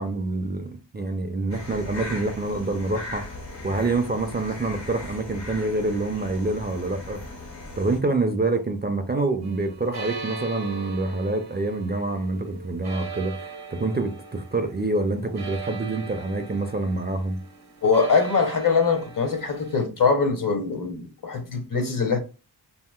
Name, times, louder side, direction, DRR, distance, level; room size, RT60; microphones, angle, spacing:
voice 1, 0.0-7.4 7.8-17.4, right 2 dB, 25° right, 0.4 m, -27 dB
sound 1, 1.5-8.0, left 2 dB, 90° left, 1.4 m, -38 dB
sound 2, 9.4-19.9, right 4 dB, 65° right, 0.8 m, -40 dB
voice 2, 17.8-22.2, left 4 dB, 50° left, 0.8 m, -22 dB
2.8 x 2.8 x 2.3 m
cardioid pair, 40°, 43 cm